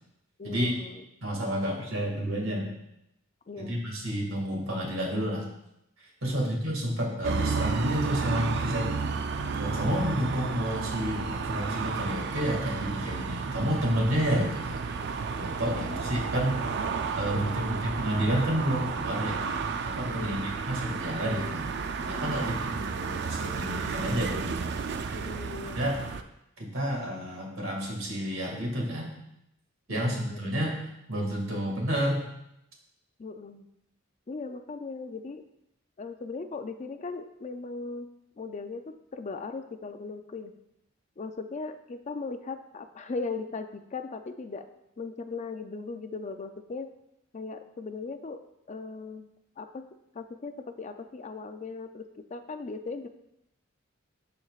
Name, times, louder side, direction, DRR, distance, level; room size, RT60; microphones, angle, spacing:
voice 1, 0.4-1.0 3.5-3.9 6.2-6.5 15.7-16.0 17.3-17.8 20.1-20.5 22.4-22.6 25.1-26.0 29.9-30.5 33.2-33.7 34.3-35.4 36.0-38.1 38.4-40.5 41.2-44.7 45.0-46.9 47.3-48.4 48.7-49.3 49.6-49.9 50.1-53.1, left 4 dB, 35° left, 8 dB, 0.4 m, -38 dB
voice 2, 1.2-2.7 3.6-5.5 6.0-9.1 9.6-14.8 15.4-16.8 17.2-19.4 19.8-21.7 22.0-24.6 25.7-26.0 26.6-29.1 29.9-30.7 31.1-32.3, equal, 90° right, -1 dB, 2.1 m, -30 dB
sound 1, 7.2-26.2, right 5 dB, 55° right, 0.4 m, -32 dB
13.0 x 4.4 x 2.4 m, 0.83 s
head